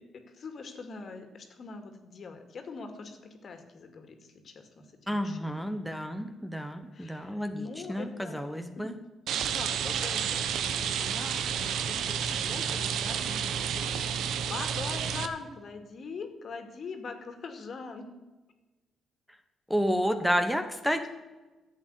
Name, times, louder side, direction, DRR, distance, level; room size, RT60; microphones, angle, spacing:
voice 1, 0.0-5.6 6.9-8.5 8.7-8.9 9.3-18.0 20.9-21.1, left 4 dB, 50° left, 7 dB, 2.2 m, -43 dB
voice 2, 5.1-9.0 19.7-21.1, equal, ahead, 7 dB, 1.1 m, -30 dB
Rain, 9.3-15.3, right 8 dB, 75° right, 0.9 m, -30 dB
11.5 x 8.1 x 9.3 m, 1.2 s
cardioid pair, 90°, 0 cm